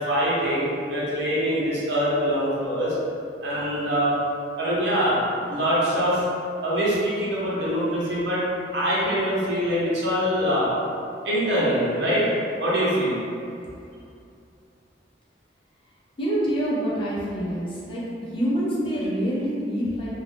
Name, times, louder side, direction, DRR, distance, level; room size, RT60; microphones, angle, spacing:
voice 1, 0.0-2.9 3.4-4.1 4.6-5.2 5.5-6.2 6.6-8.4 8.7-10.7 11.2-12.3 12.6-13.2, equal, 70° right, -8 dB, 0.9 m, -24 dB
voice 2, 16.2-18.0 18.3-20.1, equal, 30° left, -8 dB, 0.6 m, -26 dB
2.4 x 2.2 x 3.4 m, 2.5 s
head